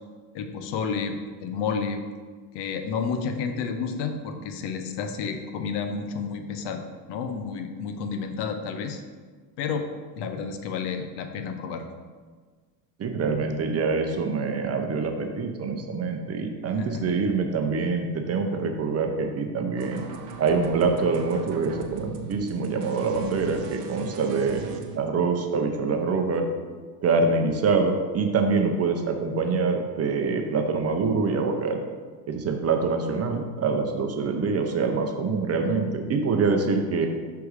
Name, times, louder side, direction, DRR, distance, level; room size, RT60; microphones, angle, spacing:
voice 1, 0.3-2.0 2.5-6.8 7.1-9.0 9.6-9.9 10.2-11.9 16.8-17.2, left 5 dB, 60° left, 7 dB, 0.8 m, -30 dB
voice 2, 13.0-20.0 20.4-23.6 23.9-24.6 25.0-26.4 27.0-31.8 32.3-37.1, right 4 dB, 30° right, 4 dB, 0.7 m, -25 dB
sound 1, 19.8-25.0, right 6 dB, 80° right, 0.8 m, -38 dB
6.0 x 3.5 x 4.9 m, 1.5 s
supercardioid pair, 90°, 47 cm